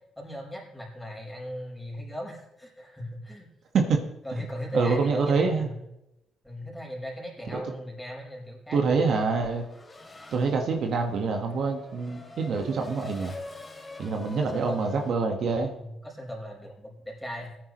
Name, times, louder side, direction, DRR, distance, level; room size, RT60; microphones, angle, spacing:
voice 1, 0.2-3.5 4.2-5.8 6.4-9.0 14.1-15.0 15.5-17.6, equal, 10° left, -2 dB, 4.9 m, -38 dB
voice 2, 4.7-5.7 7.5-7.6 8.7-9.6 10.3-13.4 14.0-15.7, right 4 dB, 65° right, 3 dB, 1.6 m, -26 dB
Race car auto racing / Accelerating revving vroom, 9.5-15.1, left 2 dB, 25° left, 2.0 m, -45 dB
17.5 x 9.8 x 3.2 m, 0.86 s
cardioid pair, 90°, 0 cm